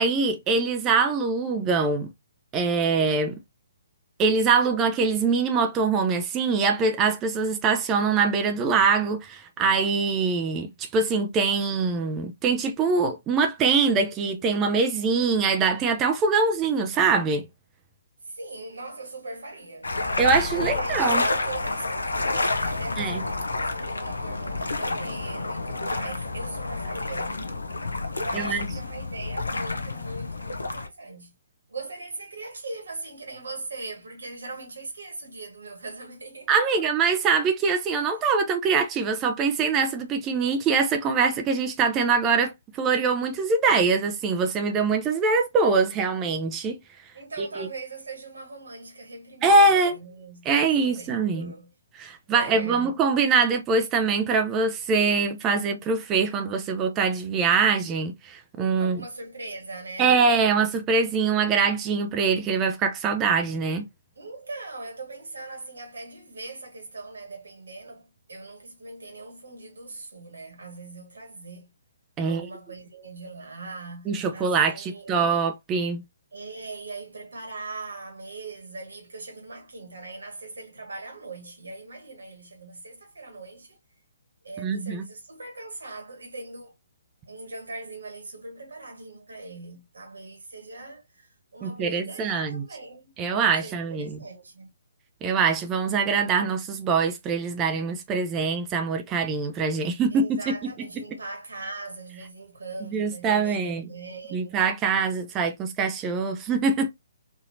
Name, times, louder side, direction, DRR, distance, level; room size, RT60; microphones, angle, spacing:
voice 1, 0.0-2.1 2.5-3.4 4.2-17.5 20.2-21.2 23.0-23.2 28.3-28.6 36.5-46.8 47.6-47.7 49.4-49.9 50.5-51.5 52.0-59.0 60.0-63.9 72.2-72.5 74.1-76.0 84.6-85.0 91.6-92.7 93.2-94.2 95.2-100.6 102.9-103.9 104.3-106.9, right 4 dB, 20° right, 0.5 m, -23 dB
voice 2, 18.2-20.0 20.6-27.4 28.1-31.3 31.7-36.8 47.1-51.7 52.3-53.0 58.7-60.2 64.1-71.7 72.2-75.3 76.3-83.8 84.4-86.7 87.3-93.1 93.6-94.7 100.1-104.6, right 3 dB, 70° right, 1.6 m, -40 dB
sound 1, 19.8-30.9, left 2 dB, 75° left, 0.7 m, -29 dB
4.1 x 2.7 x 2.7 m
figure-of-eight pair, 135°, 0 cm